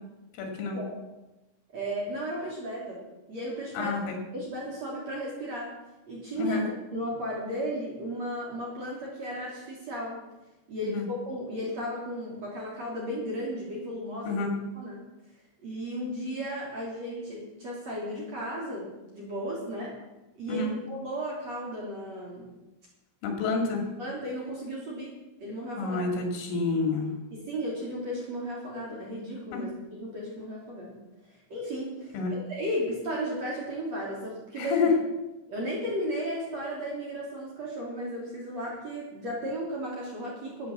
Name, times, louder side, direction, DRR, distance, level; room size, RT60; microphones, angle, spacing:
voice 1, 0.4-0.8 3.7-4.1 6.3-6.6 10.8-11.0 14.2-14.5 20.5-20.7 23.2-23.8 25.8-27.1 29.5-29.6 32.1-32.3 34.6-34.9, left 4 dB, 75° left, 2 dB, 4.8 m, -28 dB
voice 2, 1.7-3.0 3.3-4.0 4.3-5.7 6.1-6.6 6.9-10.2 10.7-14.5 14.7-15.0 15.6-20.0 20.3-22.5 24.0-25.1 25.4-26.0 27.3-31.0 31.3-34.9 35.5-40.7, equal, 40° right, -4 dB, 3.4 m, -35 dB
12.5 x 9.3 x 7.2 m, 1.0 s
omnidirectional pair, 6.0 m